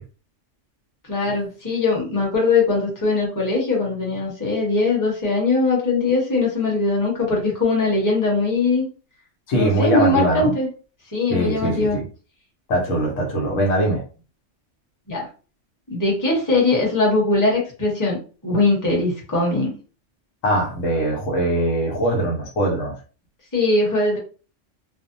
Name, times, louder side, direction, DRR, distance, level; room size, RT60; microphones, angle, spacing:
voice 1, 1.1-8.8 9.5-10.7 11.1-12.0 15.1-15.3 15.9-19.7 23.5-24.2, left 3 dB, 15° left, -3 dB, 0.9 m, -21 dB
voice 2, 9.5-10.5 11.3-12.1 12.7-14.0 20.4-23.0, right 1 dB, 85° left, 0 dB, 1.1 m, -21 dB
2.6 x 2.0 x 2.6 m, 0.37 s
omnidirectional pair, 1.3 m